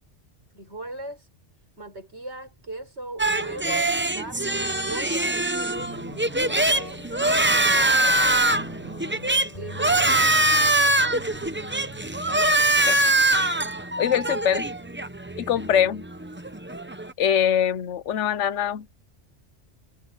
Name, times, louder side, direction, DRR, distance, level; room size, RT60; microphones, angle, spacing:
voice 1, 0.5-1.3 1.8-5.4 6.3-8.3 9.6-10.2, right 1 dB, 70° right, 6.5 m, -38 dB
sound 1, 3.2-17.1, right 2 dB, 10° right, 0.7 m, -23 dB
Guitar, 5.8-15.3, left 1 dB, 35° left, 4.9 m, -44 dB
voice 2, 14.0-14.6 15.4-16.1 17.2-19.1, left 9 dB, 85° left, 1.1 m, -23 dB
omnidirectional pair, 1.2 m